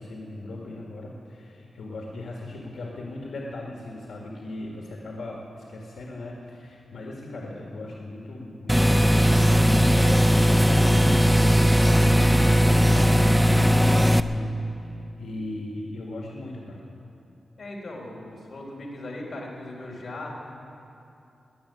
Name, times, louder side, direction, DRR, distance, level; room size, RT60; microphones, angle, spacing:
voice 1, 0.0-16.8, left 2 dB, 70° left, -2 dB, 1.8 m, -38 dB
sound 1, 8.7-14.2, equal, 5° right, 0.4 m, -18 dB
voice 2, 17.6-20.4, left 1 dB, 40° left, -3 dB, 3.3 m, -38 dB
20.5 x 7.1 x 9.7 m, 2.7 s
wide cardioid pair, 180°, 0 cm